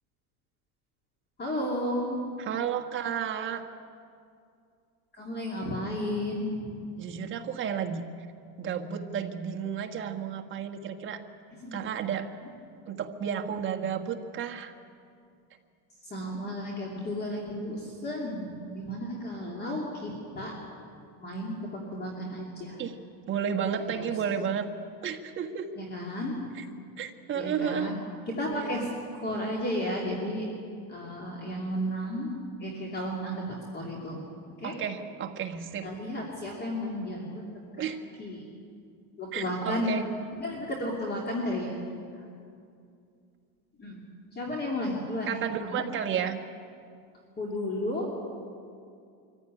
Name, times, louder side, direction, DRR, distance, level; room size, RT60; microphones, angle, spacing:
voice 1, 1.4-2.2 5.2-6.8 11.6-11.8 16.1-20.6 21.2-22.8 23.7-24.1 25.8-26.3 27.3-28.0 28.3-28.9 29.2-30.5 30.9-34.2 34.6-34.7 35.8-37.3 38.2-38.5 39.2-39.9 40.4-41.8 43.8-44.0 44.3-45.8 47.4-48.1, left 1 dB, 25° left, -1 dB, 2.8 m, -33 dB
voice 2, 2.4-3.6 7.0-8.0 8.6-11.2 11.7-12.3 12.9-14.7 22.8-23.0 23.3-24.7 25.0-25.7 26.5-26.6 27.0-27.9 28.5-28.9 34.6-35.9 37.8-38.0 39.3-40.1 45.3-46.4, right 8 dB, 30° right, 3 dB, 1.4 m, -32 dB
24.0 x 15.0 x 9.8 m, 2.4 s
cardioid pair, 160°, 42 cm